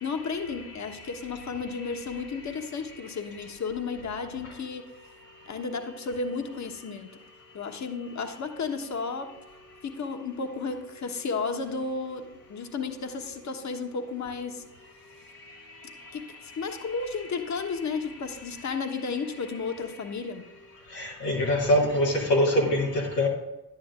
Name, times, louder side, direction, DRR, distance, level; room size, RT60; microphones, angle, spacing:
voice 1, 0.0-4.9 5.5-7.1 7.5-9.3 9.8-14.6 16.1-20.5, left 4 dB, 35° left, 6 dB, 1.2 m, -33 dB
voice 2, 20.9-23.3, left 1 dB, 90° left, -3 dB, 1.6 m, -23 dB
11.0 x 8.6 x 2.5 m, 1.0 s
figure-of-eight pair, 45°, 48 cm